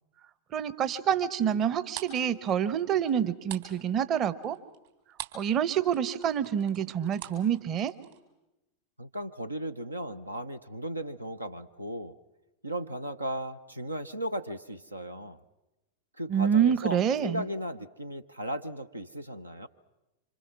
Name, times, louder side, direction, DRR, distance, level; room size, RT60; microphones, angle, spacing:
voice 1, 0.5-4.6 5.3-7.9 16.3-17.4, right 8 dB, 30° right, 15 dB, 1.0 m, -27 dB
sound 1, 1.5-5.5 5.8-8.2, right 12 dB, 55° right, 3.6 m, -44 dB
voice 2, 9.0-12.1 12.6-15.4 16.2-19.7, right 1 dB, 80° right, 10 dB, 0.7 m, -36 dB
26.5 x 26.0 x 6.0 m, 0.99 s
figure-of-eight pair, 90°, 0 cm